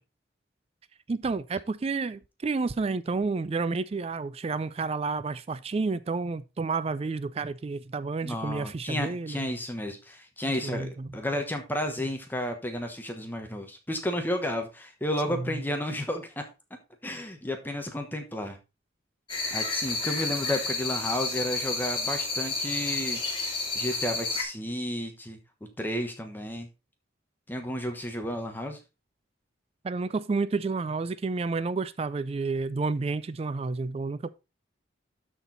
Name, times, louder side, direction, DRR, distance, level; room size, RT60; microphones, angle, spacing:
voice 1, 1.1-9.5 10.6-11.1 15.3-15.6 29.8-34.3, right 4 dB, 30° right, 0.3 m, -30 dB
voice 2, 8.2-16.5 17.0-18.6 19.5-23.2 23.7-25.4 25.8-26.7 27.5-28.8, left 1 dB, 10° left, 1.1 m, -32 dB
sound 1, 19.3-24.4, left 3 dB, 25° left, 2.6 m, -30 dB
12.5 x 4.5 x 4.0 m
head